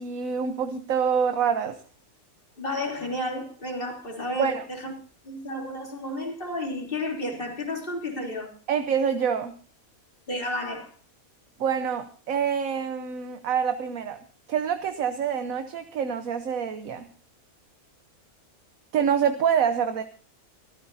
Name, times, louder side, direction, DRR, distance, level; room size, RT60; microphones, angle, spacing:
voice 1, 0.0-1.8 4.4-4.6 8.7-9.5 11.6-14.2 14.5-17.1 18.9-20.0, right 7 dB, 70° right, 1.3 m, -26 dB
voice 2, 2.6-4.9 5.2-8.5 10.3-10.9, left 1 dB, 40° left, 3.4 m, -32 dB
24.5 x 14.5 x 2.7 m
omnidirectional pair, 1.5 m